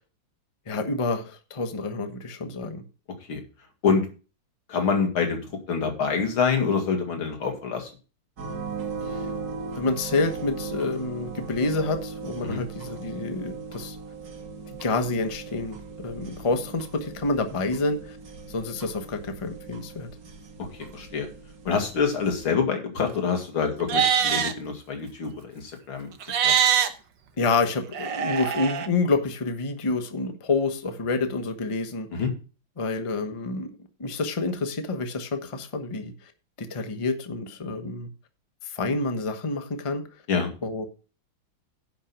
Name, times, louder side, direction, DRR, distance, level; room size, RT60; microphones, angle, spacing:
voice 1, 0.7-2.8 9.0-9.3 9.8-14.0 14.7-18.2 18.5-20.1 27.4-32.1 32.8-36.3 36.6-38.1 38.6-40.0 40.6-40.9, left 3 dB, 20° left, 0.9 m, -28 dB
voice 2, 4.7-5.4 5.7-7.9 12.4-12.6 20.6-21.3 21.6-26.1 26.4-26.5 32.1-32.3 40.3-40.5, left 5 dB, 85° left, 3.0 m, -26 dB
sound 1, 8.4-22.5, right 4 dB, 50° right, 1.9 m, -38 dB
Livestock farm animals working animals, 23.8-24.5 26.2-26.9 27.9-28.9, right 8 dB, 65° right, 1.7 m, -23 dB
10.5 x 5.9 x 6.0 m
omnidirectional pair, 2.2 m